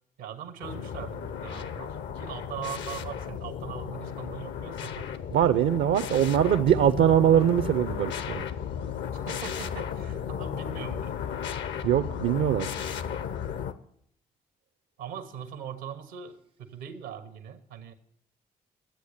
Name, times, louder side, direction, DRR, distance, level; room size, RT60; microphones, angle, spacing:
voice 1, 0.2-5.1 9.3-11.2 15.0-17.9, right 8 dB, 85° right, 10 dB, 1.0 m, -41 dB
sound 1, 0.6-13.7, left 8 dB, 65° left, 0.7 m, -34 dB
voice 2, 5.3-8.4 11.8-12.7, right 10 dB, 65° right, 10 dB, 0.5 m, -22 dB
11.5 x 8.2 x 6.5 m, 0.69 s
hypercardioid pair, 40°, 20 cm